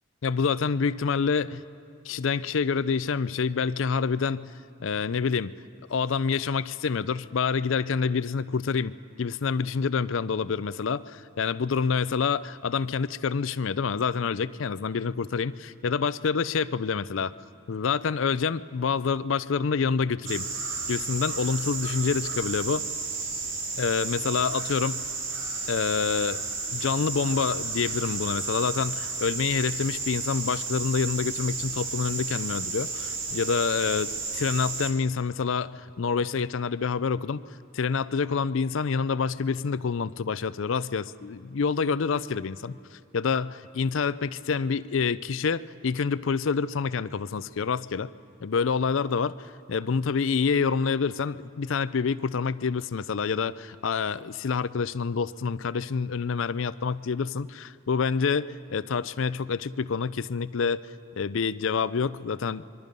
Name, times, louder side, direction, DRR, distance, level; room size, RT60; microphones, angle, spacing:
voice 1, 0.2-1.6 2.0-4.5 4.8-5.5 5.9-17.3 17.7-20.5 20.9-22.8 23.8-25.0 25.7-26.4 26.7-37.4 37.7-42.8 43.1-48.1 48.4-60.8 61.2-62.6, left 5 dB, 65° left, 16 dB, 0.5 m, -27 dB
sound 1, 20.2-34.9, right 4 dB, 65° right, 2.9 m, -32 dB
25.5 x 22.5 x 5.3 m, 2.4 s
head